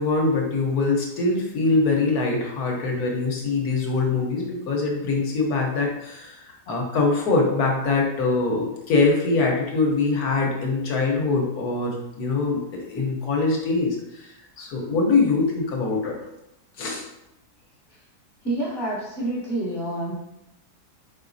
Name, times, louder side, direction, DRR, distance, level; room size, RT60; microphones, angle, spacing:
voice 1, 0.0-14.3 14.6-16.1 16.8-17.0, left 3 dB, 65° left, -1 dB, 1.4 m, -23 dB
voice 2, 18.4-20.1, right 1 dB, 45° left, -6 dB, 1.1 m, -28 dB
4.6 x 3.9 x 2.6 m, 0.88 s
omnidirectional pair, 1.8 m